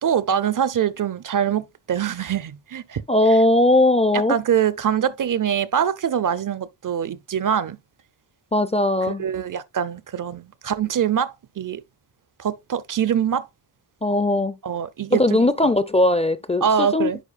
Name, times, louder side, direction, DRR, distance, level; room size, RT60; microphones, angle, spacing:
voice 1, 0.0-3.0 4.3-7.8 9.2-11.8 12.4-13.5 14.6-15.5 16.6-17.2, right 8 dB, 50° right, 0.5 m, -24 dB
voice 2, 3.1-4.4 8.5-9.2 14.0-14.6 15.1-17.1, left 1 dB, 15° left, 0.4 m, -19 dB
10.0 x 4.6 x 2.4 m
wide cardioid pair, 90°, 41 cm